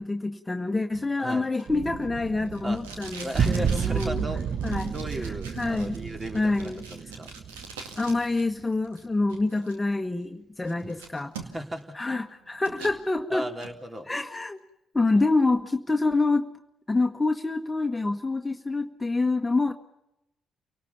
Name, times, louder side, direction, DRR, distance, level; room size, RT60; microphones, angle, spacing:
voice 1, 0.0-4.2 4.6-4.9 5.2-6.0 6.3-6.8 8.0-11.3 11.9-13.5 14.1-14.6 14.9-16.5 16.9-19.7, left 3 dB, 20° left, 6 dB, 1.4 m, -26 dB
Packing tape duct tape, 0.9-8.4 8.7-9.7 10.2-10.3 10.6-11.8 12.2-13.0 13.4-13.7, right 5 dB, 85° right, 2.1 m, -44 dB
sound 1, 1.7-8.5, right 7 dB, 55° right, 0.8 m, -31 dB
voice 2, 3.2-4.4 4.9-7.3 10.8-10.9 11.5-12.1 12.8-13.0 13.3-14.1, right 1 dB, 30° right, 4 dB, 3.2 m, -36 dB
29.5 x 18.5 x 7.1 m, 0.86 s
hypercardioid pair, 45°, 0 cm